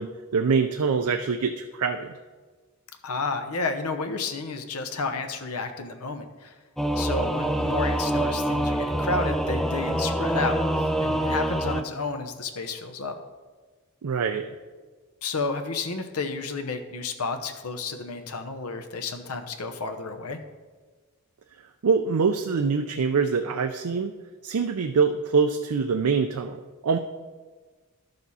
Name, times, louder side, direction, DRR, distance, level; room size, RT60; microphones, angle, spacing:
voice 1, 0.0-2.1 14.0-14.5 21.8-24.1 24.4-27.0, right 5 dB, 90° right, 7 dB, 0.5 m, -24 dB
voice 2, 3.0-6.6 6.9-10.6 11.0-13.2 15.2-20.4, left 4 dB, 90° left, 7 dB, 0.9 m, -31 dB
Singing / Musical instrument, 6.8-11.8, right 1 dB, ahead, 0.3 m, -25 dB
11.5 x 6.8 x 4.2 m, 1.4 s
head